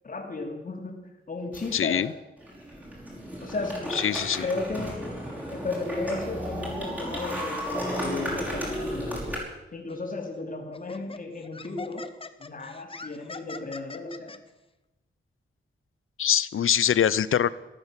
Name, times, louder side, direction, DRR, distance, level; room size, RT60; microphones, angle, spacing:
voice 1, 0.0-2.1 3.4-4.0 4.4-5.1 5.5-9.4 9.7-12.1 12.4-14.4, left 3 dB, 40° left, 2 dB, 3.0 m, -34 dB
sound 1, 1.5-2.0 2.4-9.4, equal, 5° right, 5.5 m, -34 dB
voice 2, 1.7-2.1 3.9-4.4 16.2-17.5, left 9 dB, 85° left, 18 dB, 0.7 m, -23 dB
Laughter, 9.9-10.1 10.7-14.4, left 3 dB, 25° left, 0.9 m, -42 dB
14.0 x 13.0 x 7.5 m, 0.99 s
wide cardioid pair, 140°, 21 cm